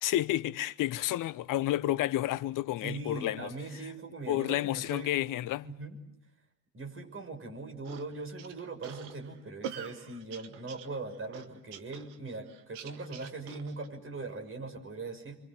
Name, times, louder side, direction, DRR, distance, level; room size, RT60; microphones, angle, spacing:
voice 1, 0.0-3.5 4.3-5.7, left 14 dB, 40° left, 0.9 m, -30 dB
voice 2, 2.8-5.1 5.6-6.0 6.7-15.4, right 3 dB, 25° right, 6.3 m, -40 dB
sound 1, 7.9-13.9, right 9 dB, 60° right, 2.0 m, -45 dB
29.5 x 24.5 x 7.6 m
hypercardioid pair, 70°, 47 cm